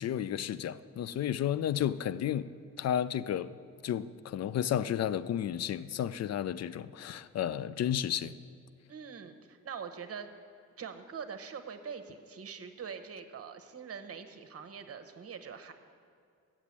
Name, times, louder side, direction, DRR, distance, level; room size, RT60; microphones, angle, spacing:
voice 1, 0.0-2.5 2.8-3.5 3.8-8.4, left 10 dB, 50° left, 0.4 m, -32 dB
voice 2, 8.9-10.3 10.8-15.7, right 6 dB, 45° right, 1.0 m, -43 dB
8.1 x 7.3 x 7.4 m
supercardioid pair, 60°, 34 cm